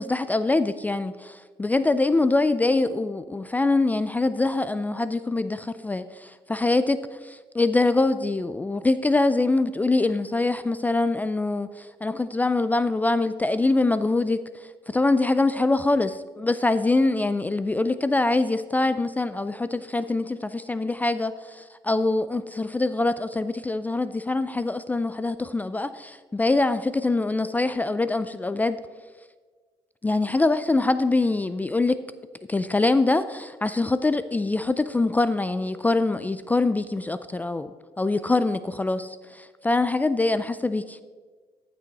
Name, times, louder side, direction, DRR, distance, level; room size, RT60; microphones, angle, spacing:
voice 1, 0.0-14.4 14.9-28.8 30.0-32.0 32.5-41.0, left 2 dB, 15° left, 13 dB, 0.3 m, -24 dB
13.5 x 6.2 x 4.1 m, 1.5 s
cardioid pair, 100°, 11 cm